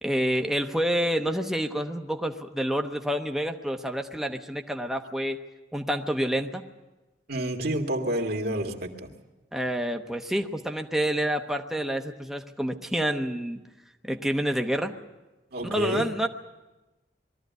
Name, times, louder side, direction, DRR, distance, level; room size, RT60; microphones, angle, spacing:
voice 1, 0.0-5.4 5.7-6.6 9.5-13.6 14.0-14.9 15.6-16.3, equal, ahead, 4 dB, 1.0 m, -28 dB
voice 2, 7.3-9.1 15.5-16.1, right 1 dB, 60° right, 3 dB, 2.0 m, -29 dB
21.5 x 13.5 x 9.3 m, 1.1 s
head